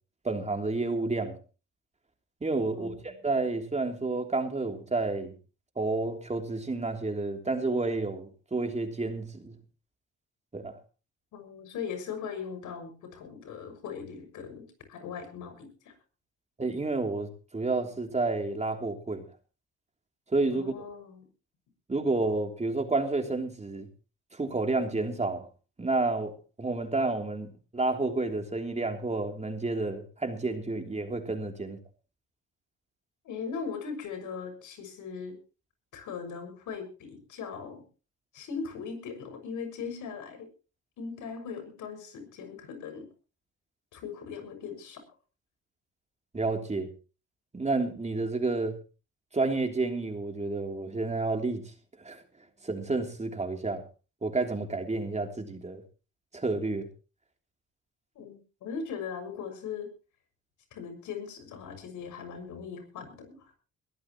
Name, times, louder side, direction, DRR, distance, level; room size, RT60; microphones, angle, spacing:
voice 1, 0.2-1.4 2.4-5.3 5.8-9.6 10.5-10.7 16.6-19.2 20.3-20.7 21.9-23.9 24.3-25.5 25.8-26.3 26.6-31.8 46.3-46.9 47.5-48.8 49.3-51.7 52.0-52.2 52.6-53.8 54.2-55.8 56.3-56.9, right 3 dB, 20° right, 3.2 m, -30 dB
voice 2, 2.7-3.3 11.3-15.9 20.5-21.3 33.2-35.4 35.9-37.8 38.3-40.5 41.0-43.1 43.9-45.0 58.1-59.9 60.7-63.5, left 6 dB, 80° left, 6.5 m, -39 dB
22.0 x 14.0 x 3.1 m
cardioid pair, 90°, 30 cm